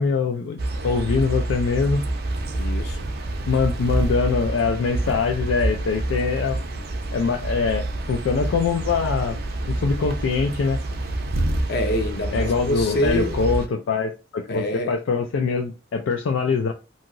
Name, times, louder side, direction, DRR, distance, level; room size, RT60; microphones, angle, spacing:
voice 1, 0.0-2.0 3.5-6.6 7.1-9.4 9.7-10.8 12.3-16.7, left 5 dB, 75° left, 0.4 m, -23 dB
sound 1, 0.6-13.7, right 1 dB, 50° right, 0.5 m, -27 dB
voice 2, 2.5-3.0 11.7-13.4 14.5-14.9, left 1 dB, 55° left, 0.7 m, -26 dB
2.8 x 2.7 x 2.5 m
head